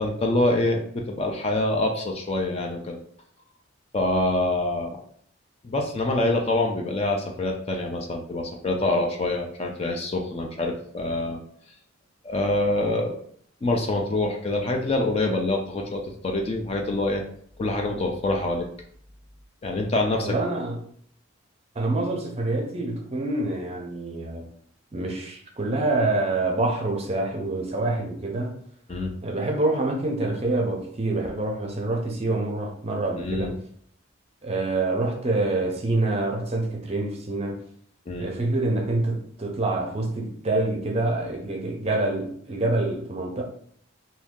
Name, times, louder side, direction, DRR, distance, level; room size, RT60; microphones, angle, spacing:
voice 1, 0.0-3.0 3.9-5.0 5.6-11.4 12.2-13.2 13.6-17.2 17.6-18.7 19.6-20.4 28.9-29.1 33.2-33.5 38.1-38.3, left 2 dB, 30° left, 0.4 m, -25 dB
voice 2, 20.2-20.8 21.8-24.5 24.9-28.6 29.2-33.5 34.4-37.6 38.2-43.4, right 2 dB, 30° right, 0.5 m, -26 dB
2.7 x 2.7 x 3.6 m
head